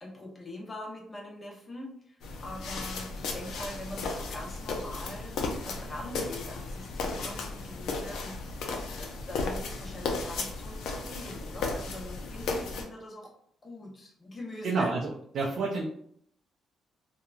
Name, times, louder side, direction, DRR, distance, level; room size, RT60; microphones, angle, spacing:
voice 1, 0.0-8.3 8.7-13.3 13.6-14.9, left 1 dB, 25° left, -1 dB, 0.8 m, -43 dB
sound 1, 2.2-12.8, left 3 dB, 80° left, 0.5 m, -35 dB
voice 2, 14.6-15.8, right 3 dB, 70° right, -3 dB, 0.4 m, -29 dB
2.9 x 2.2 x 2.4 m, 0.66 s
cardioid pair, 90°, 0 cm